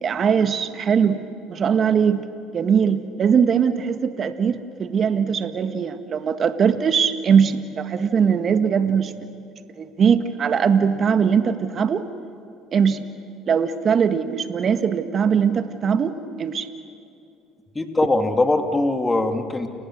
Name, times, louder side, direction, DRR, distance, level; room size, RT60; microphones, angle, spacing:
voice 1, 0.0-1.2 1.5-2.2 2.5-9.1 9.8-12.1 12.7-13.1 13.5-16.7, right 7 dB, 45° right, 9 dB, 1.7 m, -20 dB
voice 2, 17.7-19.7, left 2 dB, 20° left, 5 dB, 3.0 m, -21 dB
30.0 x 30.0 x 6.5 m, 2.7 s
hypercardioid pair, 75°, 0 cm